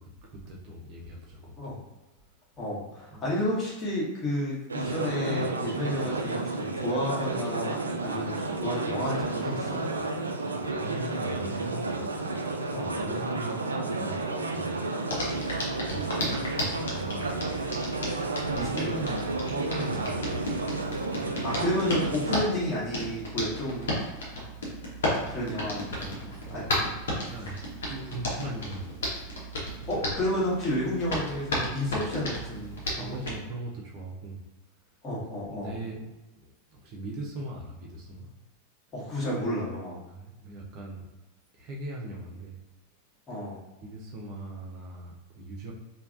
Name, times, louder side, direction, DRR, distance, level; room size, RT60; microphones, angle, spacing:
voice 1, 0.0-1.7 3.1-3.3 10.6-12.0 12.9-17.6 18.5-20.6 26.1-27.0 27.3-28.9 29.9-30.1 31.9-32.0 32.9-34.4 35.5-38.3 40.1-41.1 41.6-42.6 43.8-45.7, right 2 dB, 40° right, -2 dB, 0.6 m, -40 dB
voice 2, 2.6-9.8 12.7-13.0 18.5-18.9 21.4-24.0 25.3-26.6 29.9-33.2 35.0-35.7 38.9-40.0 43.3-43.6, left 1 dB, 20° left, -6 dB, 1.2 m, -31 dB
sound 1, 4.7-22.4, right 2 dB, 75° right, 0.3 m, -31 dB
Hands, 15.1-33.4, left 1 dB, 60° left, 0.8 m, -34 dB
3.2 x 2.2 x 2.5 m, 1.1 s
figure-of-eight pair, 90°, 0 cm